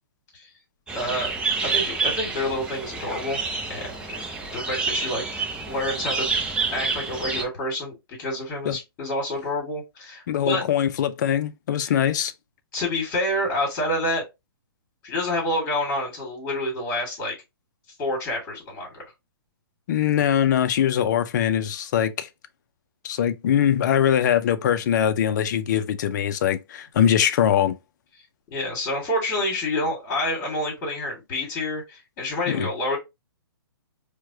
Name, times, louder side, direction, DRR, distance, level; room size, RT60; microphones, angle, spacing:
voice 1, 0.9-3.4 3.7-3.9 4.5-6.3 6.7-10.6 11.8-11.9 12.7-14.2 15.0-17.3 18.0-19.0 28.5-33.0, left 1 dB, 30° left, 1.9 m, -28 dB
sound 1, 0.9-7.4, right 4 dB, 5° right, 0.5 m, -28 dB
voice 2, 10.3-12.3 19.9-22.3 23.0-27.8 32.5-32.7, left 9 dB, 50° left, 0.5 m, -22 dB
4.5 x 2.3 x 2.7 m
figure-of-eight pair, 125°, 13 cm